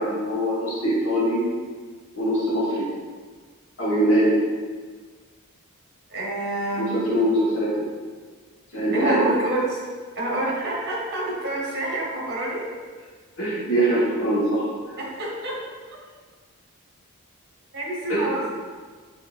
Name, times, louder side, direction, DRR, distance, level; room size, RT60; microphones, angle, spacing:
voice 1, 0.0-1.4 2.1-2.9 3.8-4.4 6.7-7.7 8.7-9.2 13.4-14.6 18.1-18.3, right 1 dB, 65° left, -6 dB, 1.3 m, -22 dB
voice 2, 6.1-6.9 8.9-9.8 10.2-12.6 15.0-15.5 17.7-18.6, right 1 dB, 50° right, -4 dB, 1.0 m, -27 dB
5.0 x 2.9 x 2.4 m, 1.5 s
head